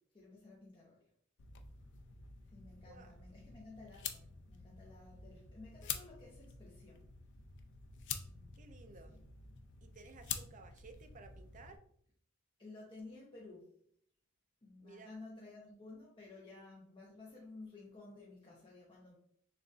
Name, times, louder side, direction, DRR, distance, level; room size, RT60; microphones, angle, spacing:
voice 1, 0.1-1.0 2.5-7.1 8.3-8.6 9.1-9.2 12.6-13.7 14.6-19.2, left 3 dB, 25° left, -5 dB, 0.8 m, -54 dB
sound 1, 1.4-11.8, left 7 dB, 60° left, 0.4 m, -48 dB
voice 2, 8.6-9.2 9.8-11.8 14.8-15.1, right 4 dB, 35° right, 6 dB, 0.5 m, -56 dB
6.6 x 2.5 x 2.5 m, 0.64 s
head